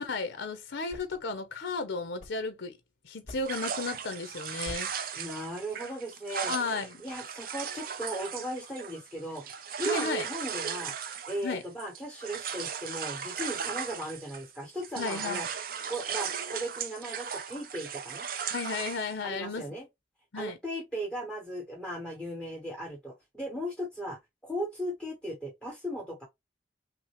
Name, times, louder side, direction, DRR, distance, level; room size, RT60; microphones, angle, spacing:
voice 1, 0.0-2.8 3.0-4.9 6.5-7.0 9.8-10.2 11.4-11.6 15.0-15.5 18.5-19.7 20.3-20.6, left 4 dB, 80° left, 0.7 m, -34 dB
sound 1, 0.7-2.8 3.3-3.8 4.6-5.1, left 1 dB, 45° left, 2.9 m, -48 dB
sound 2, 3.5-14.6 14.8-19.1, right 7 dB, 50° right, 0.5 m, -37 dB
voice 2, 5.2-6.5 7.0-15.5 15.9-18.3 19.2-19.9 20.3-26.2, right 1 dB, 5° left, 1.1 m, -37 dB
6.0 x 2.1 x 3.0 m
head